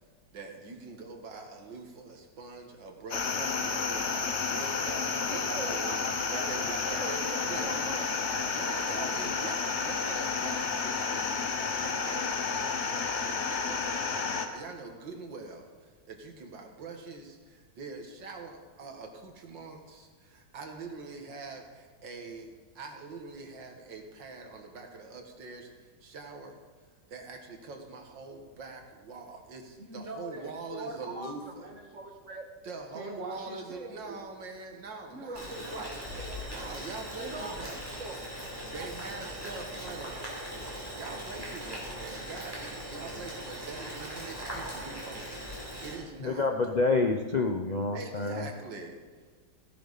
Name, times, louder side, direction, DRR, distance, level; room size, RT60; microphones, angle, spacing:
voice 1, 0.3-6.0 6.3-11.5 11.8-26.6 27.1-31.7 32.6-36.0 36.5-38.0 38.7-40.2 40.6-45.4 45.8-46.5 47.9-48.9, right 3 dB, 80° right, 3 dB, 2.2 m, -44 dB
sound 1, 3.1-14.5, left 5 dB, 45° left, 1.1 m, -31 dB
voice 2, 5.3-6.0 6.3-8.4 29.8-32.4 32.9-34.2 35.1-35.9 36.2-36.7 37.2-38.2 38.6-38.9 39.2-39.6, right 2 dB, 45° right, 2 dB, 2.0 m, -42 dB
Boiling, 35.3-46.0, equal, 10° right, 4.5 m, -40 dB
voice 3, 46.2-48.5, left 3 dB, 65° left, 4 dB, 0.4 m, -28 dB
16.0 x 11.5 x 4.1 m, 1.5 s
omnidirectional pair, 2.0 m